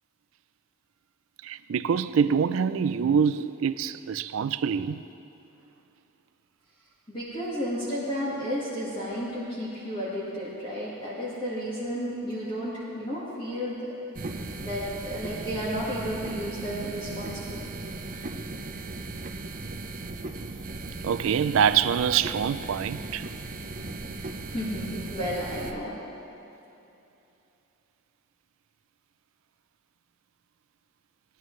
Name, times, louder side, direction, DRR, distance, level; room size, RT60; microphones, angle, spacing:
voice 1, 1.4-5.0 21.0-23.2, right 7 dB, 70° right, 0.4 m, -25 dB
voice 2, 7.1-13.9 14.6-17.7 24.5-26.0, equal, 25° left, 1.7 m, -32 dB
sound 1, 14.1-25.7, right 2 dB, 40° right, 0.7 m, -37 dB
18.5 x 11.0 x 3.2 m
head